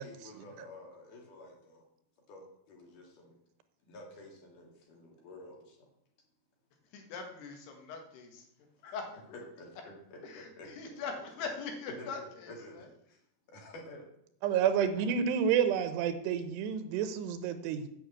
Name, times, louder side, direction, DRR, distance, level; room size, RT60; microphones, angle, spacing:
voice 1, 0.0-1.8 2.3-3.4 3.8-5.9 9.3-10.7 12.0-13.2 13.5-14.1, left 2 dB, 55° left, 1 dB, 3.4 m, -50 dB
voice 2, 6.9-8.5 8.8-9.1 10.2-12.9, left 5 dB, 75° left, 3 dB, 3.6 m, -41 dB
voice 3, 14.4-17.9, right 8 dB, 85° right, 10 dB, 3.0 m, -29 dB
8.0 x 6.7 x 8.2 m, 0.74 s
omnidirectional pair, 4.8 m